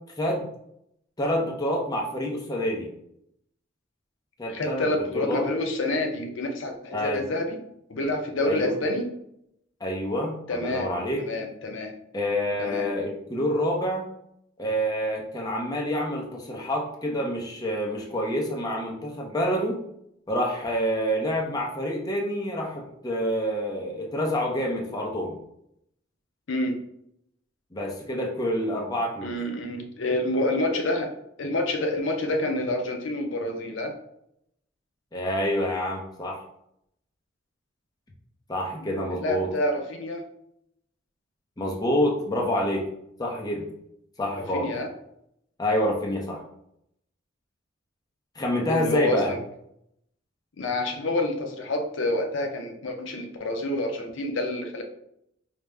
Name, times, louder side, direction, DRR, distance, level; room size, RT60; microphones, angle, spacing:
voice 1, 1.2-2.9 4.4-5.5 6.9-7.2 8.4-8.7 9.8-11.2 12.1-14.1 14.6-19.8 20.3-25.4 27.7-29.4 35.1-36.4 38.5-39.5 41.6-42.9 43.2-43.7 44.2-44.7 45.6-46.4 48.4-49.3, equal, 20° left, -2 dB, 0.6 m, -27 dB
voice 2, 4.5-7.6 7.9-9.1 10.5-10.9 11.2-11.9 12.6-12.9 26.5-26.8 29.2-34.0 38.8-38.9 39.2-40.2 44.4-44.9 48.7-49.4 50.6-54.8, left 1 dB, 70° left, 4 dB, 0.6 m, -28 dB
5.0 x 2.0 x 3.3 m, 0.77 s
head